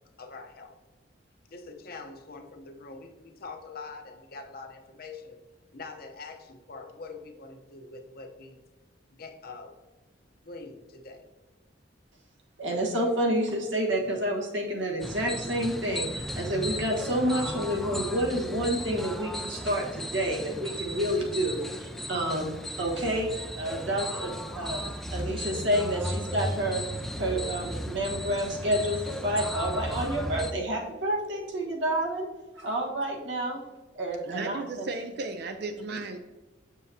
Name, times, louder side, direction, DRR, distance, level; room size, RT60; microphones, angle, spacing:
voice 1, 0.2-0.8 1.5-5.4 5.7-8.6 9.1-9.8 10.4-11.3, left 3 dB, 55° left, 4 dB, 0.8 m, -44 dB
voice 2, 12.6-24.8 25.1-26.8 27.2-32.3 32.6-33.6 33.9-34.9, equal, 85° right, 0 dB, 1.4 m, -29 dB
sound 1, 15.0-30.5, equal, ahead, 0.4 m, -35 dB
voice 3, 34.2-36.2, right 3 dB, 60° right, 7 dB, 0.4 m, -35 dB
7.1 x 6.9 x 2.8 m, 1.2 s
head